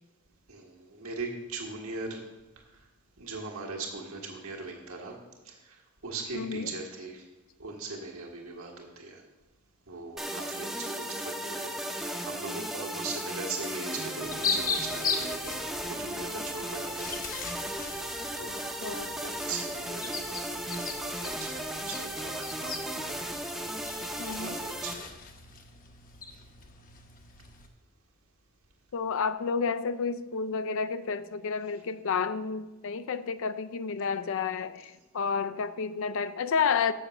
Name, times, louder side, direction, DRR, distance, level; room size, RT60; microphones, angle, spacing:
voice 1, 0.5-2.2 2.6-2.8 3.2-5.1 5.4-7.2 7.6-9.2 9.9-15.5 15.9-17.2 18.4-23.2 24.4-25.1, right 3 dB, 70° right, 1.7 m, -40 dB
voice 2, 6.3-6.8 18.8-19.1 24.2-24.6 28.9-36.9, left 5 dB, 65° left, 0.4 m, -30 dB
sound 1, 10.2-24.9, right 1 dB, ahead, 0.6 m, -36 dB
sound 2, 14.2-27.7, left 5 dB, 40° left, 0.8 m, -38 dB
7.1 x 6.0 x 6.5 m
head